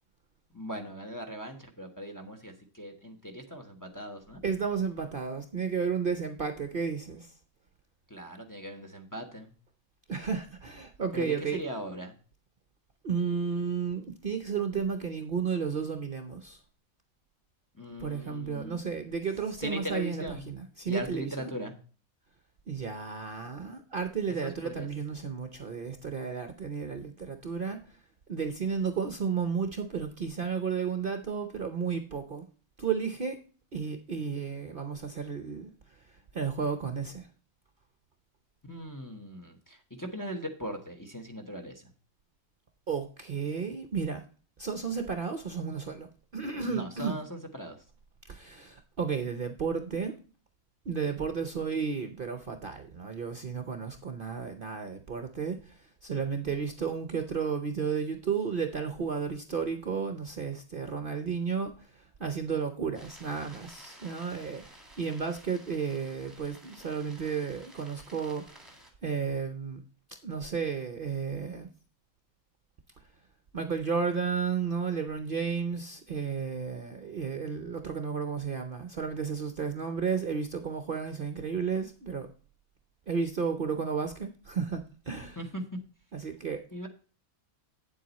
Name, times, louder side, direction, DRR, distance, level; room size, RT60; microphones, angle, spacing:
voice 1, 0.5-4.4 8.1-9.5 11.1-12.1 17.8-18.8 19.6-20.5 20.9-21.7 24.4-24.9 38.7-41.8 46.6-47.8 85.4-85.6 86.7-86.9, equal, 15° left, 1.0 m, -39 dB
voice 2, 4.4-7.3 10.1-11.6 13.0-16.6 18.0-21.5 22.7-28.0 28.3-32.5 32.8-33.4 33.7-37.3 42.9-44.2 44.6-46.1 46.3-47.2 48.2-50.2 50.9-69.8 70.2-71.7 73.5-82.3 83.1-85.4 86.1-86.6, right 6 dB, 50° right, 0.8 m, -33 dB
sound 1, 62.9-68.9, right 1 dB, ahead, 1.9 m, -54 dB
8.6 x 7.6 x 4.1 m
omnidirectional pair, 1.5 m